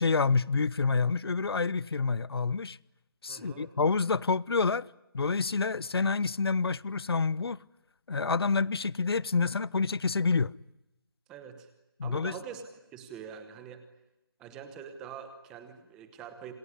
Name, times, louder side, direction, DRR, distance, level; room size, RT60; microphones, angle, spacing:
voice 1, 0.0-2.8 3.2-4.9 5.1-7.6 8.1-10.5 12.0-12.3, left 4 dB, 90° left, 0.9 m, -28 dB
voice 2, 3.3-3.7 11.3-11.7 12.0-12.6 12.9-13.8 14.4-16.5, right 8 dB, 5° right, 1.0 m, -44 dB
27.5 x 20.5 x 9.8 m
hypercardioid pair, 180°, 12 cm